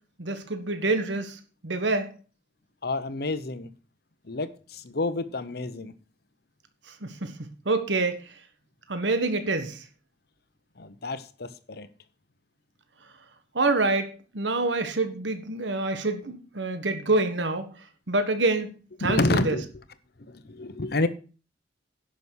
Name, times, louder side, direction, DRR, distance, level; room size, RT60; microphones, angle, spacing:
voice 1, 0.2-2.1 7.0-8.2 8.9-9.8 13.5-17.7 18.1-18.7 19.0-19.6, right 2 dB, 80° right, 8 dB, 1.4 m, -26 dB
voice 2, 2.8-3.7 4.2-5.9 10.8-11.9 19.0-19.8 20.3-21.1, left 2 dB, 60° left, 13 dB, 1.0 m, -29 dB
11.0 x 6.3 x 6.3 m, 0.37 s
head